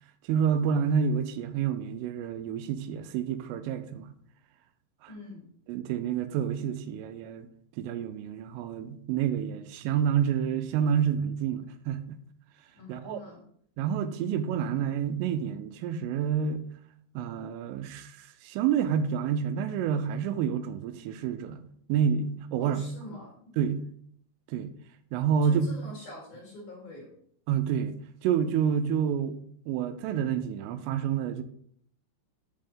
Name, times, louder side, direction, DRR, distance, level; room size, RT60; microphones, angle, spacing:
voice 1, 0.3-4.1 5.0-5.1 5.7-7.5 7.8-12.2 12.9-13.2 13.8-16.6 17.2-21.6 21.9-22.8 23.6-23.8 24.5-24.7 25.1-25.7 27.5-29.3 29.7-31.4, right 8 dB, 90° right, 3.2 m, -28 dB
voice 2, 5.1-5.5 12.7-13.4 22.6-23.5 25.4-27.1, left 1 dB, 55° left, 2.7 m, -44 dB
7.1 x 5.6 x 5.2 m
omnidirectional pair, 5.7 m